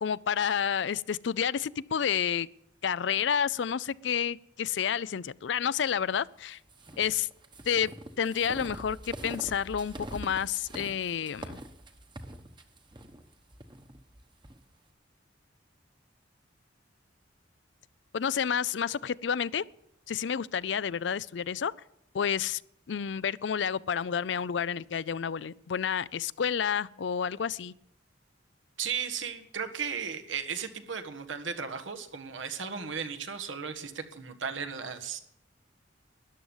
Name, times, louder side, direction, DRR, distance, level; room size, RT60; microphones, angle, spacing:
voice 1, 0.0-2.5 2.8-6.6 7.0-7.3 7.7-7.9 8.2-11.6 18.1-19.6 20.1-21.7 22.1-22.6 22.9-27.7, left 7 dB, 65° left, 0.4 m, -30 dB
sound 1, 6.7-14.6, right 1 dB, 25° right, 1.1 m, -44 dB
voice 2, 28.8-35.2, right 6 dB, 85° right, 1.5 m, -35 dB
13.5 x 10.5 x 7.2 m
head